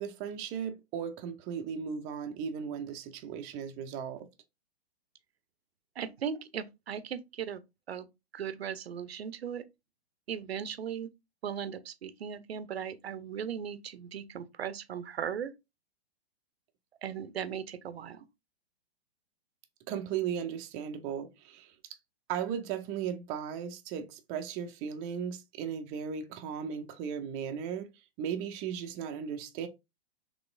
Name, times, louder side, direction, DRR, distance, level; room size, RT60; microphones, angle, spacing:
voice 1, 0.0-4.3 19.9-21.7 22.3-27.9 28.2-29.7, right 8 dB, 25° right, 0.5 m, -36 dB
voice 2, 6.0-7.6 7.9-8.1 8.3-9.6 10.3-11.1 11.4-15.5 17.0-18.3, right 8 dB, 75° right, 0.6 m, -37 dB
4.0 x 3.0 x 2.3 m
figure-of-eight pair, 115°, 31 cm